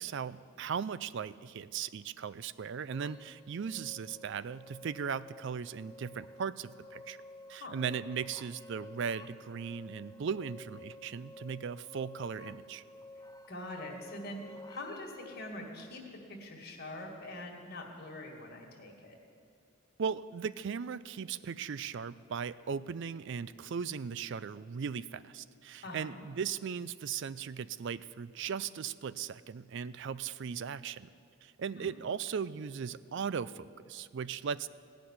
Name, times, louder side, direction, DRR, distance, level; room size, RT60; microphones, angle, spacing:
voice 1, 0.0-7.2 7.5-12.8 20.0-31.1 31.4-34.7, right 6 dB, 55° right, 17 dB, 0.4 m, -38 dB
sound 1, 2.9-15.5, left 2 dB, 20° left, 0.5 m, -52 dB
voice 2, 13.5-16.0 16.3-19.2 25.8-26.2 31.8-31.9, left 1 dB, 45° left, 0 dB, 2.0 m, -44 dB
17.5 x 6.1 x 9.9 m, 2.4 s
head